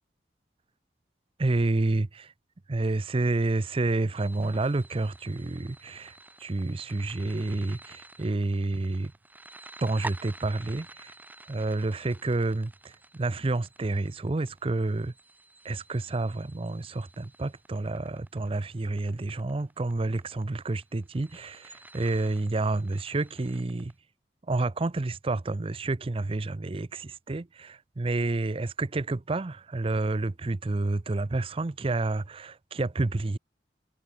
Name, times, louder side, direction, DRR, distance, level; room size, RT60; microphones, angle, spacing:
voice 1, 1.4-2.1 2.7-9.1 9.8-11.1 11.5-15.1 15.6-23.9 24.5-33.4, right 2 dB, 30° right, 0.6 m, -29 dB
sound 1, 4.2-23.9, right 2 dB, 10° right, 1.4 m, -49 dB
head